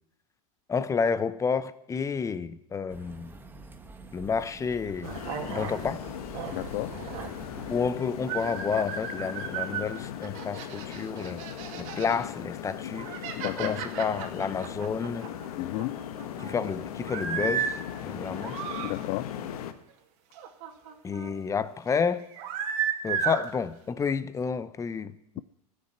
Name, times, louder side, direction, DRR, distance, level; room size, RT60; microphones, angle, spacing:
voice 1, 0.7-3.3 4.1-5.1 5.5-6.0 7.7-11.4 11.8-13.2 13.4-15.3 16.4-18.6 21.0-22.3 23.0-25.4, left 5 dB, 15° left, 0.7 m, -30 dB
sound 1, 2.9-7.9, right 3 dB, 10° right, 1.2 m, -47 dB
sound 2, 4.8-7.8 8.3-9.9 10.2-12.2 12.7-15.5 15.7-16.5 17.0-17.7 18.2-18.9 20.3-21.3 22.2-23.5, right 7 dB, 55° right, 2.3 m, -34 dB
sound 3, 5.0-19.7, left 10 dB, 70° left, 1.3 m, -38 dB
voice 2, 6.5-6.9 13.4-13.8 15.6-16.0 18.3-18.4 18.8-19.3, left 20 dB, 45° left, 0.4 m, -32 dB
15.5 x 6.7 x 9.3 m
hypercardioid pair, 110°, 20 cm